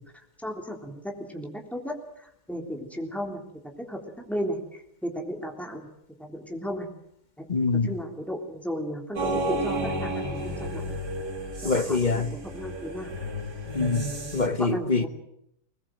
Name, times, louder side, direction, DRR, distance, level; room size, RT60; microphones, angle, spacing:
voice 1, 0.4-3.4 3.9-4.0 4.3-4.6 5.0-5.9 6.2-6.9 7.4-7.5 7.8-10.9 11.6-12.2 12.5-13.1 14.6-15.1, equal, ahead, 3.6 m, -34 dB
voice 2, 7.5-8.0 11.6-12.4 13.7-15.1, left 3 dB, 35° left, 1.0 m, -25 dB
sound 1, 9.2-14.5, right 1 dB, 85° right, 3.4 m, -32 dB
21.0 x 20.0 x 7.9 m
omnidirectional pair, 1.7 m